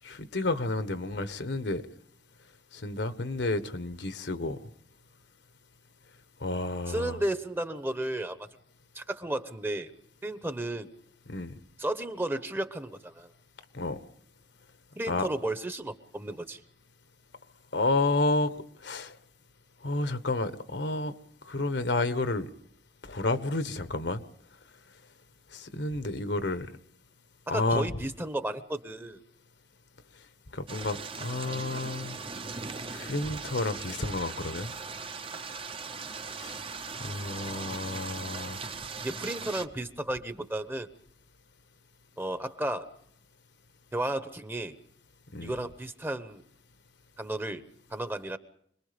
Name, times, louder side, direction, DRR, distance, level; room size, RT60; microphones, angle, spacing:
voice 1, 0.0-1.8 2.7-4.6 6.4-7.2 11.3-11.5 13.7-14.0 15.1-15.3 17.7-18.5 18.8-19.2 19.8-21.1 21.4-22.5 23.0-24.2 25.5-26.7 27.5-27.9 30.5-32.2 32.9-34.7 36.4-36.6 37.0-38.6 45.3-45.5, left 2 dB, 70° left, 1.3 m, -30 dB
voice 2, 6.9-8.5 8.9-9.9 10.2-10.9 11.8-13.3 15.0-16.6 27.5-29.2 39.0-40.9 42.2-42.9 43.9-44.8 45.4-46.4 47.2-47.6 47.9-48.4, right 1 dB, 10° right, 1.1 m, -33 dB
Rain and thunder, 30.7-39.7, right 4 dB, 30° right, 0.9 m, -39 dB
26.5 x 21.0 x 5.2 m
head